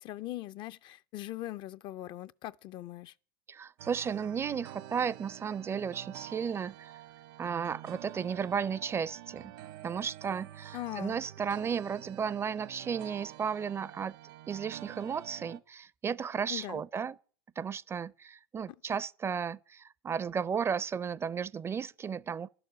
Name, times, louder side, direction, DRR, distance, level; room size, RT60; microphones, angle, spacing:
voice 1, 0.0-3.1 10.7-11.1 16.5-16.8, left 15 dB, 45° left, 0.5 m, -40 dB
voice 2, 3.5-6.9 7.4-9.5 9.8-14.1 14.5-17.2 17.6-22.5, right 7 dB, 25° right, 0.5 m, -34 dB
sound 1, 3.8-15.6, right 13 dB, 70° right, 1.0 m, -48 dB
11.5 x 6.9 x 9.3 m
hypercardioid pair, 100°, 11 cm